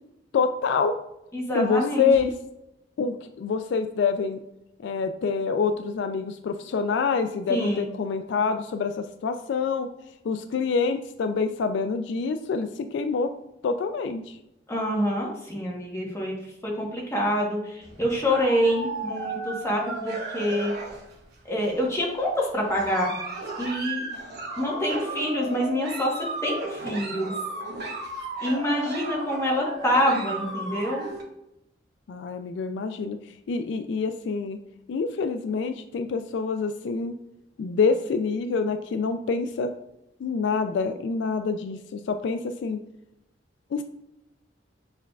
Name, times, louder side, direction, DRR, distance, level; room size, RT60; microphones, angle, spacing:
voice 1, 0.3-1.0 1.5-2.3 3.0-4.4 4.8-9.9 10.2-13.3 13.6-14.4 24.0-24.2 32.1-33.2 33.5-34.6 34.9-37.2 37.6-39.7 40.2-42.8 43.7-43.8, left 5 dB, 65° left, 8 dB, 0.3 m, -26 dB
voice 2, 1.3-2.1 7.5-7.9 14.7-16.4 16.6-20.7 21.4-23.1 23.6-24.0 24.6-27.3 28.4-31.0, equal, 15° left, -2 dB, 1.1 m, -26 dB
sound 1, 17.8-21.3 21.6-22.2 22.7-31.2, right 2 dB, 60° right, 1.0 m, -35 dB
6.6 x 3.4 x 2.3 m, 0.87 s
head